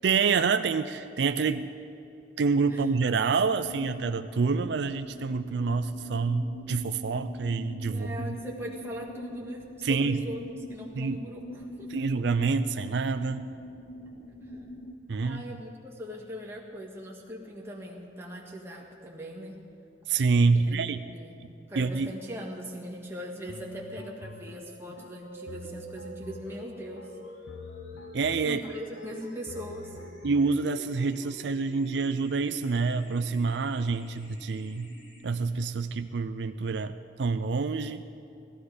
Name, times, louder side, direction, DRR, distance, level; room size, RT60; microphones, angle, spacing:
voice 1, 0.0-1.7 2.4-8.1 9.8-10.3 10.9-11.2 11.9-13.5 15.1-15.4 20.1-21.0 21.8-22.1 28.1-28.6 30.2-34.9 35.2-38.0, right 4 dB, 65° right, 10 dB, 0.4 m, -27 dB
sound 1, 3.5-14.9, left 1 dB, 35° left, 1.0 m, -43 dB
voice 2, 7.9-10.4 10.7-11.9 14.4-14.5 15.2-19.6 20.5-21.4 21.7-27.1 28.4-30.0, equal, 15° right, -2 dB, 1.8 m, -40 dB
sound 2, 23.5-31.4, left 2 dB, 90° left, 0.7 m, -48 dB
sound 3, 25.2-35.2, equal, 70° left, 3.5 m, -47 dB
17.5 x 14.5 x 4.9 m, 2.7 s
head